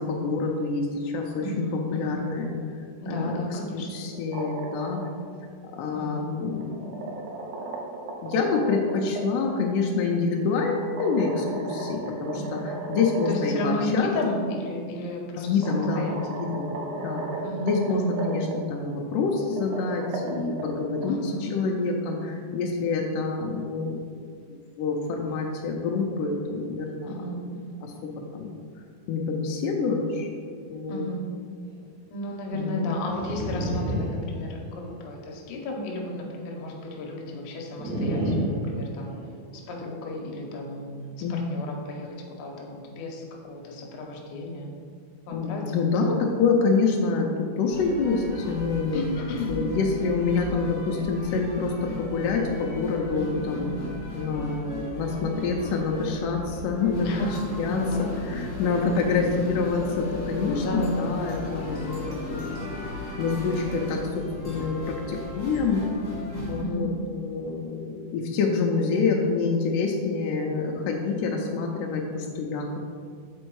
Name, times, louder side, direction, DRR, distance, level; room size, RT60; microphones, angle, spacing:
voice 1, 0.0-1.7 1.9-2.5 3.1-5.0 5.7-7.2 8.2-12.6 12.9-14.1 15.4-16.8 17.0-17.3 17.6-24.0 24.8-27.1 27.8-28.5 29.1-30.3 30.7-31.0 32.5-32.9 41.2-41.7 45.3-49.0 49.5-53.7 54.1-57.1 57.6-62.6 63.2-65.8 66.5-72.9, left 4 dB, 85° left, 0 dB, 1.8 m, -27 dB
voice 2, 1.4-2.2 3.0-4.0 5.9-6.3 12.3-12.6 13.3-16.4 17.4-18.1 21.1-21.9 27.1-27.8 30.9-31.2 32.1-39.2 39.5-44.7 45.3-45.7 46.2-46.4 48.9-49.5 53.2-53.8 57.0-58.3 60.6-61.2 66.1-66.9, left 1 dB, 70° left, 0 dB, 2.0 m, -33 dB
sound 1, 4.1-5.2 6.4-9.2 10.8-13.6 14.0-14.1 15.1-15.2 15.6-18.6 19.4-21.1, right 3 dB, 75° right, 2.3 m, -35 dB
sound 2, 33.1-34.9 37.8-39.4, equal, 40° right, 1.8 m, -29 dB
sound 3, 47.7-66.6, left 1 dB, 45° left, 1.0 m, -36 dB
6.9 x 4.3 x 4.6 m, 2.1 s
omnidirectional pair, 4.4 m